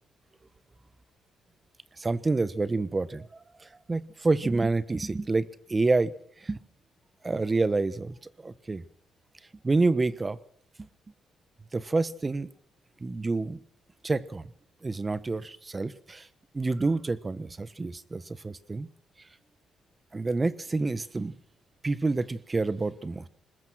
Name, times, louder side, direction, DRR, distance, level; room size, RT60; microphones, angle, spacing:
voice 1, 2.0-6.1 6.4-6.6 7.2-8.2 8.4-8.8 9.6-10.4 11.7-12.5 13.0-13.6 14.0-14.5 14.8-16.3 16.5-18.9 20.1-21.3 21.8-23.3, right 3 dB, 25° right, 16 dB, 1.2 m, -28 dB
21.5 x 20.0 x 6.3 m, 0.66 s
cardioid pair, 90°, 0 cm